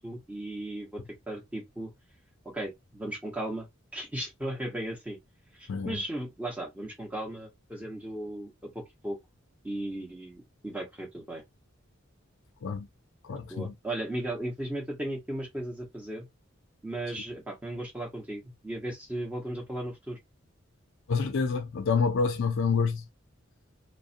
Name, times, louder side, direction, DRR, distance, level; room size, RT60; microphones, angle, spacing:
voice 1, 0.0-1.9 2.5-5.2 5.5-9.2 9.6-11.4 13.5-16.3 16.8-20.2, right 1 dB, 5° right, 0.9 m, -36 dB
voice 2, 13.2-13.7 21.1-23.1, left 5 dB, 65° left, 0.4 m, -27 dB
2.4 x 2.1 x 2.5 m
head